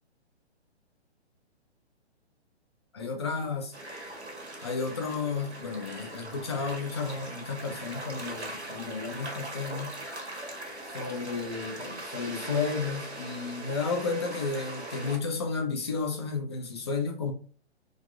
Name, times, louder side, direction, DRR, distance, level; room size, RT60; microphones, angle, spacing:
voice 1, 2.9-3.7 4.6-9.9 10.9-17.3, left 4 dB, 25° left, 0.4 m, -32 dB
sound 1, 3.7-15.2, right 1 dB, 85° right, 1.0 m, -40 dB
3.3 x 2.5 x 2.2 m
figure-of-eight pair, 125°, 33 cm